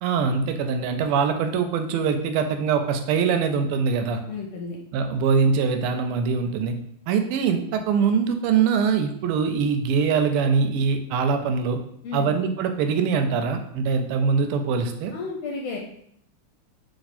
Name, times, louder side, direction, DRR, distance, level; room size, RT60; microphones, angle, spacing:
voice 1, 0.0-4.2 4.9-6.7 7.1-11.8 12.1-15.1, right 5 dB, 85° right, 6 dB, 1.5 m, -23 dB
voice 2, 4.3-4.8 12.0-12.3 15.1-15.8, left 4 dB, 80° left, -1 dB, 1.4 m, -32 dB
3.5 x 3.2 x 4.1 m, 0.70 s
omnidirectional pair, 2.4 m